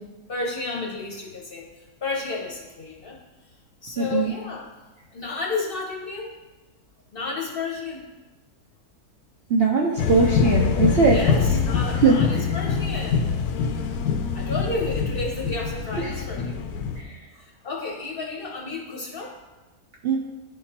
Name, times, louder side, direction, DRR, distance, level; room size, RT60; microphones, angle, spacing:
voice 1, 0.3-3.2 3.8-4.7 5.1-6.3 7.1-8.1 11.1-13.3 14.3-16.6 17.3-19.4, left 3 dB, 45° left, -2 dB, 0.8 m, -32 dB
voice 2, 4.0-4.3 9.5-11.2 12.0-12.1 16.0-16.2 17.0-17.2 20.0-20.2, right 4 dB, 65° right, -1 dB, 0.6 m, -20 dB
sound 1, 10.0-17.0, left 6 dB, 85° left, 1.1 m, -24 dB
10.5 x 3.6 x 2.9 m, 1.2 s
omnidirectional pair, 1.6 m